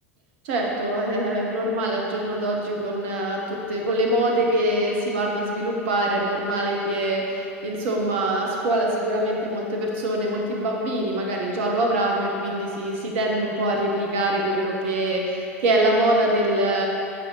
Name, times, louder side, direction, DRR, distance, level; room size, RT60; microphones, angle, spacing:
voice 1, 0.4-16.8, right 1 dB, 55° right, -1 dB, 1.1 m, -24 dB
9.0 x 5.0 x 3.2 m, 2.7 s
figure-of-eight pair, 80°, 8 cm